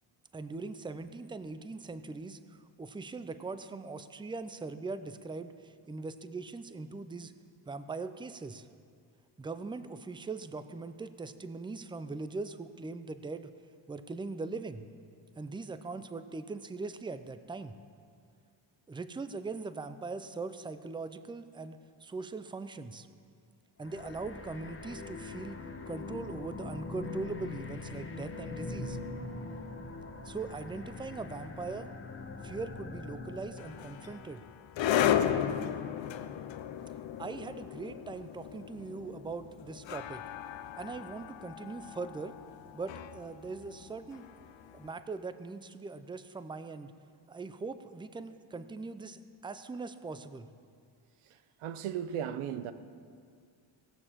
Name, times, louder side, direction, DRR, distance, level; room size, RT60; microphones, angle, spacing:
voice 1, 0.3-7.3 7.7-8.7 9.4-13.5 13.9-14.9 15.4-17.8 18.9-23.1 23.8-25.6 25.9-29.0 30.2-31.9 32.4-34.4 37.2-40.2 40.8-42.4 42.7-44.3 44.7-46.9 47.3-50.5, right 3 dB, 10° right, 0.5 m, -41 dB
sound 1, 23.8-34.4, left 3 dB, 25° left, 1.2 m, -42 dB
sound 2, 33.6-44.7, left 10 dB, 65° left, 0.8 m, -35 dB
voice 2, 51.6-52.7, right 9 dB, 80° right, 0.8 m, -35 dB
18.0 x 6.5 x 7.4 m
cardioid pair, 100°, 50 cm